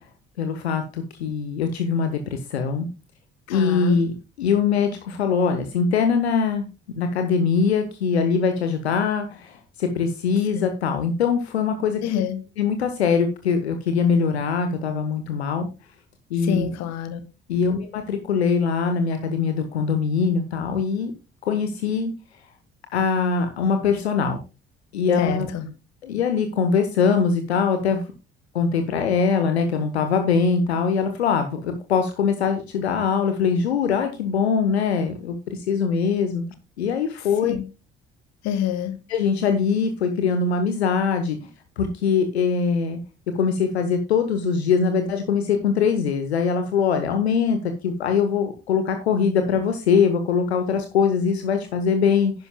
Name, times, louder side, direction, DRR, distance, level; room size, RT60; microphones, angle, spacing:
voice 1, 0.4-2.9 3.5-6.6 6.9-12.2 12.6-15.7 16.3-16.7 17.5-21.1 21.4-22.1 22.9-24.4 24.9-25.5 26.0-28.0 28.5-36.4 36.8-37.6 39.1-41.4 41.8-43.0 43.3-47.6 47.8-52.3, left 6 dB, 75° left, 1.2 m, -22 dB
voice 2, 3.5-4.0 10.5-10.7 12.0-12.4 16.4-17.2 25.2-25.7 37.5-37.6 38.4-39.0, left 10 dB, 55° left, 1.7 m, -27 dB
11.0 x 10.5 x 2.2 m
figure-of-eight pair, 50°, 32 cm